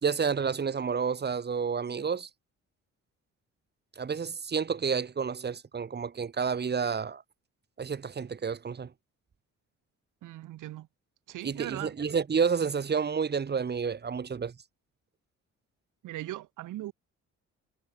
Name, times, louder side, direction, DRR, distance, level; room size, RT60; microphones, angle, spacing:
voice 1, 0.0-2.3 4.0-7.2 7.8-8.9 11.4-14.5, right 6 dB, 35° right, 1.6 m, -30 dB
voice 2, 10.2-10.9 11.3-12.0 16.0-16.9, right 15 dB, 85° right, 2.5 m, -39 dB
cardioid pair, 90°, 30 cm